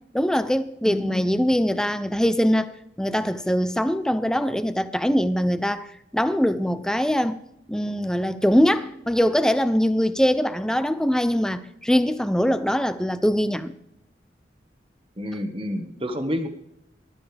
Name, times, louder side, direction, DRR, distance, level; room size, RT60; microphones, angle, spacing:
voice 1, 0.1-2.7 3.0-5.9 6.1-7.4 7.7-13.7, equal, 5° left, 0.5 m, -22 dB
voice 2, 0.8-1.4 15.2-16.5, equal, 30° right, 1.4 m, -29 dB
19.5 x 12.5 x 3.4 m
head